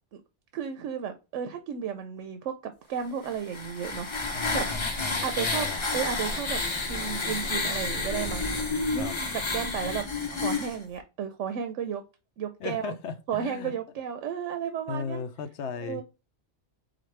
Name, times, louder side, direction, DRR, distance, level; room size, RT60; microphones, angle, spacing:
voice 1, 0.5-4.7 5.2-5.7 5.9-6.6 6.9-8.6 8.9-10.0 10.3-12.0 12.4-12.9 13.3-15.2 15.8-16.0, right 8 dB, 90° right, 0.9 m, -33 dB
sound 1, 3.2-10.8, left 3 dB, 30° left, 0.6 m, -30 dB
voice 2, 4.3-5.8 9.0-9.2 12.6-13.7 14.9-16.0, left 6 dB, 75° left, 0.9 m, -36 dB
4.1 x 4.0 x 3.2 m
omnidirectional pair, 1.2 m